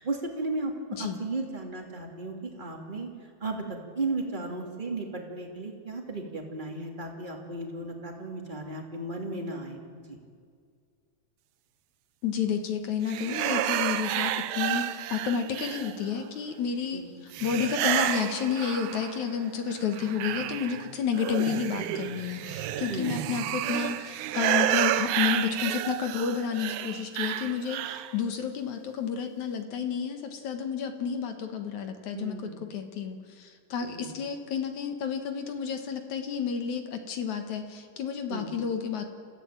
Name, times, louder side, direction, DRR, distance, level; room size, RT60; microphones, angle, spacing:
voice 1, 0.0-0.7 1.0-3.1 3.4-10.2 16.9-17.1 22.9-23.2 32.1-32.6 33.9-34.1 38.3-38.5, right 2 dB, 15° right, 1 dB, 2.3 m, -35 dB
voice 2, 12.2-32.4 32.7-39.1, left 7 dB, 60° left, 6 dB, 2.6 m, -31 dB
sound 1, 13.1-16.2 17.3-19.3 19.7-28.2, right 12 dB, 85° right, 1.7 m, -30 dB
29.0 x 15.5 x 9.1 m, 2.1 s
omnidirectional pair, 4.4 m